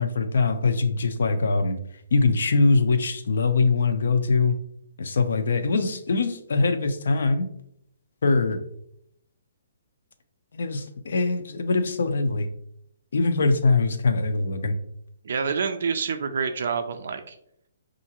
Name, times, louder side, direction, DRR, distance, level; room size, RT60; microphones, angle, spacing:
voice 1, 0.0-1.8 2.1-4.6 5.0-7.5 8.2-8.6 10.5-12.5 13.1-14.7, left 3 dB, 65° left, 8 dB, 0.6 m, -22 dB
voice 2, 15.2-17.3, right 5 dB, 55° right, 6 dB, 0.3 m, -27 dB
5.5 x 2.5 x 2.8 m, 0.72 s
hypercardioid pair, 175°, 0 cm